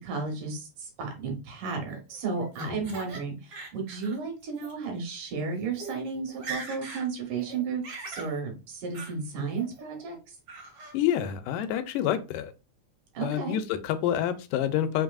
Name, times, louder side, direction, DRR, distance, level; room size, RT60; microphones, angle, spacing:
voice 1, 0.0-10.4 13.1-13.6, right 4 dB, 80° right, 2 dB, 2.7 m, -33 dB
Laughter, 1.6-3.2 3.5-4.2 4.5-4.7 5.4-5.5 5.7-6.0 6.3-7.1 7.4-8.3 8.9-9.1 9.6-10.0 10.5-10.9, right 3 dB, 60° right, 1.1 m, -41 dB
voice 2, 10.9-12.5 13.2-15.0, left 10 dB, 90° left, 10 dB, 2.1 m, -28 dB
5.6 x 2.6 x 2.4 m, 0.30 s
omnidirectional pair, 3.6 m